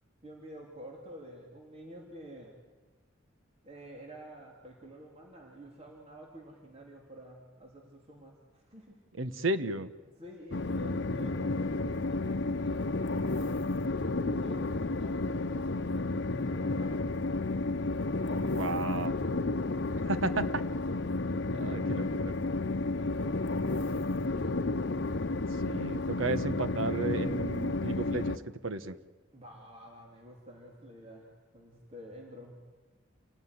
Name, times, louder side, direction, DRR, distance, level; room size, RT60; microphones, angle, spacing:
voice 1, 0.2-2.5 3.6-9.0 10.0-13.6 14.2-17.6 18.1-18.9 21.3-21.7 22.4-24.6 29.3-32.6, equal, 30° right, -1 dB, 3.3 m, -50 dB
voice 2, 9.2-9.9 18.5-19.3 20.0-20.6 21.5-22.3 25.6-28.9, right 3 dB, 85° right, 12 dB, 1.2 m, -33 dB
Train, 10.5-28.4, left 2 dB, 60° left, 0.9 m, -31 dB
28.5 x 18.0 x 9.8 m, 1.3 s
head